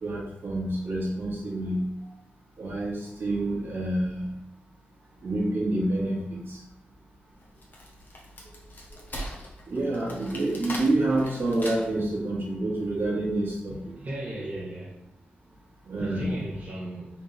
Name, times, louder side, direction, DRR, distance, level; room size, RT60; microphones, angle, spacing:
voice 1, 0.0-1.8 2.6-4.3 5.2-6.6 9.7-13.9 15.9-16.3, right 2 dB, 70° right, -5 dB, 1.8 m, -28 dB
Wood, 7.4-12.1, equal, 50° left, 1.2 m, -40 dB
voice 2, 13.7-14.9 16.0-17.1, right 1 dB, 45° right, -6 dB, 1.1 m, -36 dB
4.3 x 3.6 x 3.4 m, 0.80 s
cardioid pair, 70°, 4 cm